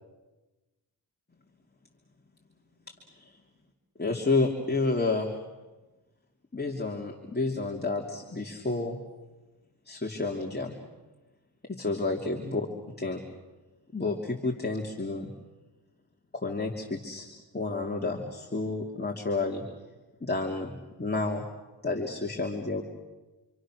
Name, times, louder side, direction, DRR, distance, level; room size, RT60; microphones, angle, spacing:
voice 1, 2.9-3.3 4.0-5.4 6.5-9.0 9.8-10.7 11.7-12.7 13.0-13.2 13.9-15.3 16.3-17.3 17.5-19.7 20.2-21.4 21.8-22.8, left 3 dB, 20° left, 0 dB, 3.1 m, -30 dB
28.0 x 26.0 x 6.4 m, 1.1 s
cardioid pair, 60°, 45 cm